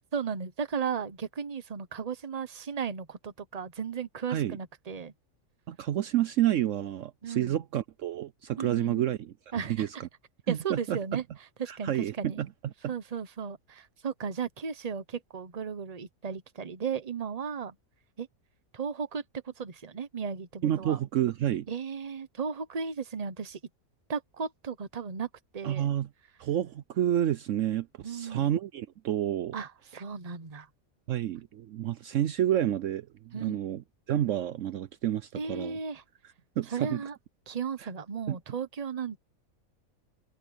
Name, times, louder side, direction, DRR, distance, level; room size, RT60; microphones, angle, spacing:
voice 1, 0.1-5.1 7.2-7.6 8.6-9.1 9.5-9.9 10.5-11.2 11.6-12.4 12.9-17.8 18.2-18.3 18.7-21.0 21.7-23.6 24.1-25.9 28.0-28.5 29.5-30.7 33.3-33.6 35.4-36.0 36.7-37.2 37.5-39.2, right 6 dB, 30° right, 1.0 m, -35 dB
voice 2, 5.7-9.3 9.8-9.9 10.5-11.2 11.7-12.5 20.6-21.7 25.6-26.1 26.4-29.5 31.1-35.8 36.6-37.0 38.3-38.4, right 11 dB, 70° right, 0.9 m, -29 dB
omnidirectional pair, 1.4 m